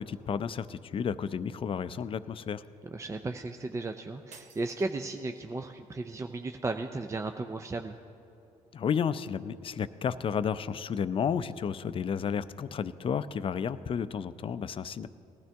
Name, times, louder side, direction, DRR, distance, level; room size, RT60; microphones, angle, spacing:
voice 1, 0.0-2.6 8.7-15.1, left 7 dB, 40° left, 14 dB, 0.5 m, -32 dB
voice 2, 2.9-8.0, right 3 dB, 20° right, 6 dB, 0.5 m, -35 dB
sound 1, 4.3-5.6, right 5 dB, 55° right, 1.0 m, -55 dB
19.0 x 12.5 x 3.5 m, 3.0 s
cardioid pair, 85°, 14 cm